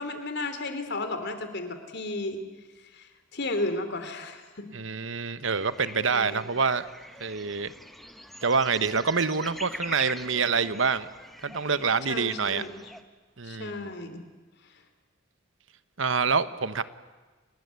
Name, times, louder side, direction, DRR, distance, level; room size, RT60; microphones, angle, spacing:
voice 1, 0.0-2.4 2.9-4.7 6.1-6.4 12.1-12.9 13.4-14.2, left 2 dB, 60° left, 9 dB, 3.2 m, -33 dB
voice 2, 4.7-6.8 7.2-7.7 8.4-11.1 11.4-12.6 13.4-13.9 16.0-16.8, right 5 dB, 70° right, 14 dB, 1.2 m, -26 dB
sound 1, 5.4-13.0, equal, ahead, 1.4 m, -43 dB
29.5 x 20.0 x 9.6 m, 1.3 s
head